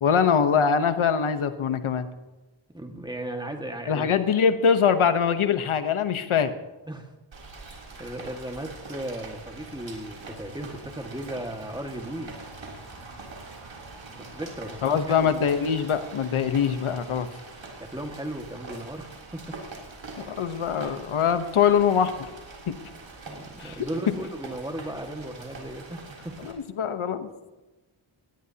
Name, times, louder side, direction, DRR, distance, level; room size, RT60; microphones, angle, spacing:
voice 1, 0.0-2.1 3.9-6.5 14.8-17.3 20.2-22.1 22.7-22.8 23.6-23.8 26.4-27.3, left 7 dB, 80° left, 9 dB, 1.2 m, -23 dB
voice 2, 2.7-4.1 6.9-7.1 7.7-12.4 14.2-15.3 17.8-19.6 23.3-26.4, right 1 dB, 10° right, 3 dB, 1.9 m, -36 dB
Rain, 7.3-26.5, right 3 dB, 65° right, 3.5 m, -43 dB
19.5 x 18.0 x 2.9 m, 1.1 s
wide cardioid pair, 120°, 49 cm